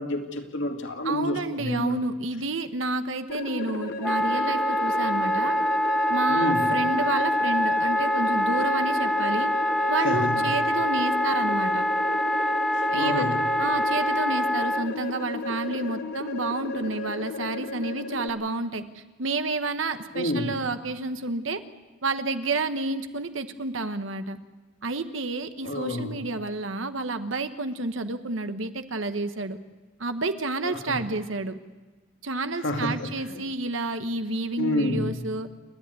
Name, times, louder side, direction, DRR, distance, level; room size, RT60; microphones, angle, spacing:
voice 1, 0.0-2.0 6.3-6.6 10.0-10.4 13.0-13.4 20.1-20.5 25.6-26.2 30.6-30.9 32.6-32.9 33.3-33.4 34.6-35.2, left 1 dB, 70° left, 3 dB, 2.4 m, -28 dB
voice 2, 1.0-5.6 6.1-9.5 9.9-11.8 12.9-13.3 13.6-21.6 22.0-24.4 24.8-29.6 30.0-31.6 32.2-35.5, right 2 dB, 80° right, 9 dB, 1.2 m, -30 dB
sound 1, 3.3-18.3, left 3 dB, 50° left, 1.4 m, -34 dB
Wind instrument woodwind instrument, 4.0-14.9, left 1 dB, ahead, 0.6 m, -25 dB
29.0 x 11.5 x 9.5 m, 1.2 s
head